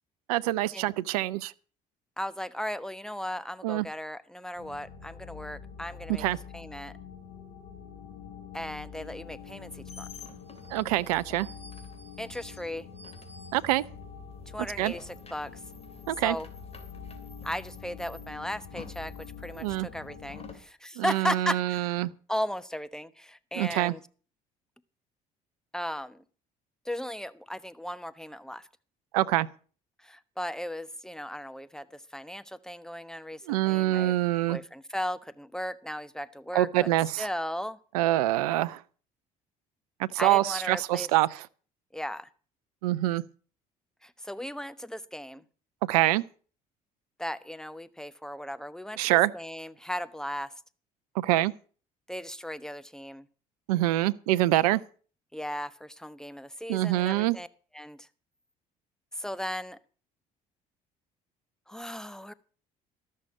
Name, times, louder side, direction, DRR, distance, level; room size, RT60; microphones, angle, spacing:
voice 1, 0.3-1.5 3.6-3.9 6.2-6.4 10.7-11.5 13.5-13.8 14.8-14.9 16.1-16.4 19.6-19.9 21.0-22.1 23.5-23.9 29.1-29.5 33.5-34.6 36.5-37.3 37.9-38.8 40.0-41.3 42.8-43.2 45.9-46.2 49.0-49.3 51.1-51.5 53.7-54.8 56.7-57.4, right 16 dB, 85° right, 0.5 m, -25 dB
voice 2, 2.2-6.2 6.5-6.9 8.5-10.1 12.2-12.9 14.5-15.6 16.2-16.5 17.4-22.0 22.3-24.0 25.7-26.2 26.8-28.7 30.0-34.2 34.5-36.9 37.2-37.8 40.2-41.1 41.9-42.3 44.0-45.4 47.2-50.5 52.1-53.3 55.3-57.5 57.7-58.1 59.1-59.8 61.7-62.3, equal, 5° left, 1.1 m, -36 dB
sound 1, 4.6-20.6, left 6 dB, 55° left, 3.2 m, -46 dB
sound 2, 9.4-14.0 14.3-20.7, left 4 dB, 35° left, 3.0 m, -51 dB
13.5 x 6.6 x 8.5 m
hypercardioid pair, 65°, 19 cm